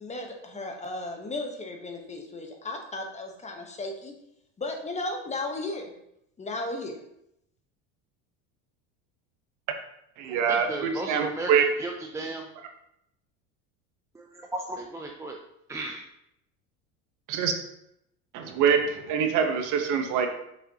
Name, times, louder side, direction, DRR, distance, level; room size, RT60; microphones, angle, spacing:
voice 1, 0.0-4.1 4.6-5.9 6.4-7.0, left 2 dB, 20° left, 3 dB, 1.0 m, -35 dB
voice 2, 10.2-11.7 17.3-17.5 18.3-20.3, right 7 dB, 55° right, 6 dB, 1.1 m, -24 dB
voice 3, 10.7-11.5 11.8-12.4 14.1-15.4 15.7-16.1, right 2 dB, 10° right, 1 dB, 0.4 m, -35 dB
6.4 x 5.4 x 2.8 m, 0.78 s
supercardioid pair, 115°, 36 cm